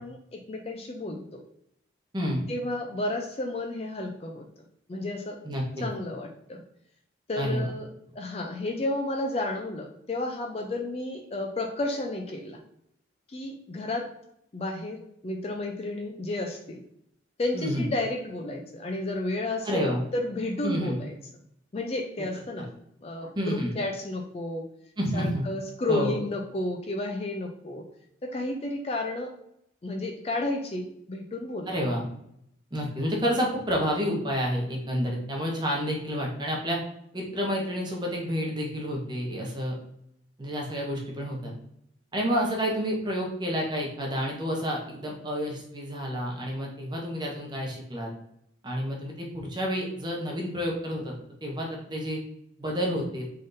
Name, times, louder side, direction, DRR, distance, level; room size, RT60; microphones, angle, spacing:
voice 1, 0.0-1.4 2.5-4.4 4.9-5.4 5.8-6.6 7.3-7.9 8.2-12.6 13.3-14.1 14.5-16.8 17.4-21.1 21.7-22.7 23.0-24.6 25.1-27.8 28.2-29.3 29.8-31.7, left 2 dB, 30° left, 3 dB, 0.4 m, -32 dB
voice 2, 5.4-5.9 7.4-7.7 17.5-17.9 19.6-20.0 20.6-21.0 22.6-22.7 23.4-23.7 25.0-25.4 25.9-26.2 31.7-32.1 32.7-36.8 37.1-39.7 40.4-41.5 42.1-48.1 48.6-51.1 51.4-52.2 52.6-53.2, equal, 25° right, -1 dB, 0.8 m, -29 dB
3.7 x 3.5 x 2.6 m, 0.74 s
head